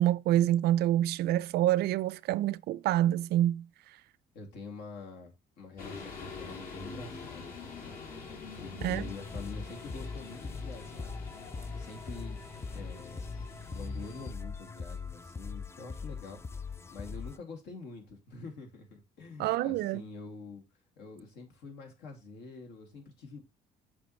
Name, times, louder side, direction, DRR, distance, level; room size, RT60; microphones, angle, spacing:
voice 1, 0.0-3.7 8.8-9.1 19.4-20.0, right 13 dB, 70° right, 0.4 m, -27 dB
voice 2, 4.3-8.0 8.6-11.2 11.7-12.4 12.7-13.2 13.7-16.4 16.9-20.6 21.0-23.4, left 4 dB, 80° left, 2.4 m, -46 dB
sound 1, 5.8-14.3, left 4 dB, 60° left, 1.9 m, -45 dB
sound 2, 8.8-17.4, left 4 dB, 15° left, 0.3 m, -41 dB
7.0 x 5.0 x 3.1 m
cardioid pair, 110°, 17 cm